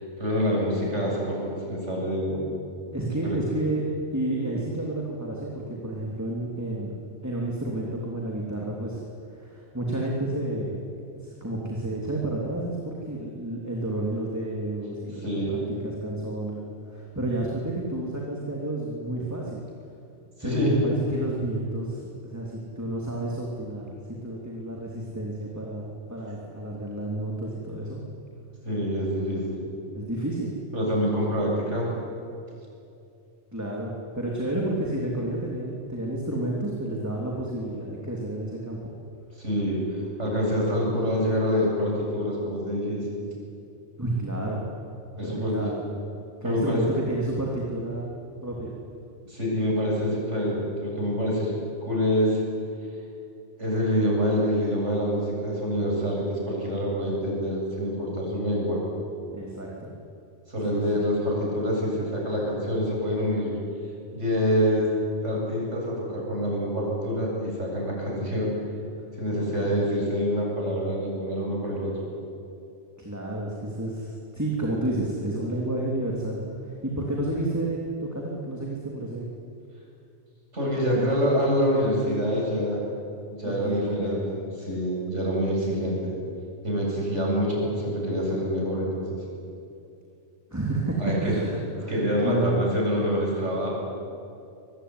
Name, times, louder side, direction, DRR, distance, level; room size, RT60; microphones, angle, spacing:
voice 1, 0.2-2.5 3.2-3.4 15.1-15.6 20.4-20.8 28.6-29.6 30.7-31.9 39.4-43.2 45.2-45.6 46.4-46.8 49.2-51.5 51.8-52.4 53.6-58.8 60.5-63.6 64.1-64.9 65.2-68.5 69.2-72.0 80.5-82.8 83.3-86.1 86.6-89.2 91.0-91.4 91.9-93.7, equal, 90° right, -3 dB, 8.4 m, -26 dB
voice 2, 2.9-3.9 4.1-6.9 7.2-9.0 9.4-10.8 11.2-16.6 16.9-19.6 20.4-24.0 24.2-28.0 29.9-30.5 33.5-38.8 44.0-44.6 45.2-45.9 46.4-48.1 48.4-48.7 59.3-59.9 60.6-61.0 73.0-76.4 76.8-79.2 83.4-84.2 90.5-92.7, right 1 dB, 15° right, -3 dB, 3.2 m, -30 dB
25.5 x 20.5 x 9.8 m, 2.6 s
omnidirectional pair, 1.2 m